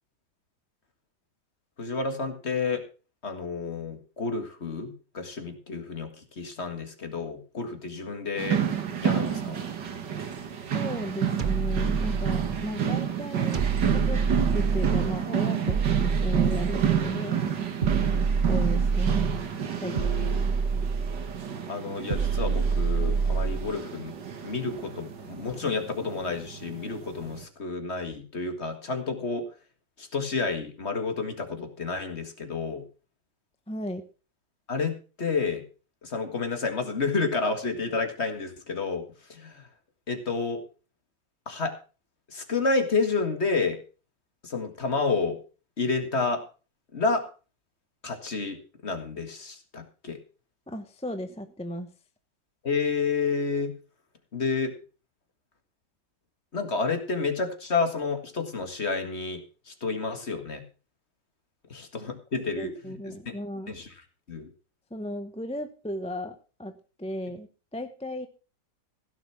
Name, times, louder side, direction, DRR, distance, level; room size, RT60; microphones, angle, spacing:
voice 1, 1.8-2.8 3.2-8.6 9.0-9.6 19.8-20.4 21.7-24.1 24.4-29.5 30.0-32.8 34.7-35.6 36.0-39.0 39.3-39.7 40.1-40.6 41.5-41.8 42.3-43.8 44.4-45.4 45.8-46.4 46.9-47.3 48.0-50.2 52.6-53.7 54.3-54.8 56.5-60.6 61.7-62.9 63.3-63.4 63.7-63.9 64.3-64.5, left 4 dB, 40° left, 6 dB, 2.0 m, -30 dB
sound 1, 8.4-27.4, right 8 dB, 90° right, 2.2 m, -30 dB
voice 2, 10.6-13.6 13.9-14.2 14.5-17.4 18.5-19.2 19.8-19.9 20.4-20.6 33.7-34.0 50.7-51.9 62.6-63.7 64.9-68.3, equal, 5° left, 8 dB, 0.7 m, -35 dB
sound 2, 11.4-12.7 13.5-15.2 15.7-17.1 17.8-19.4 20.0-21.4 22.1-23.7, right 5 dB, 40° right, 0.8 m, -26 dB
16.0 x 7.0 x 5.9 m, 0.35 s
omnidirectional pair, 1.8 m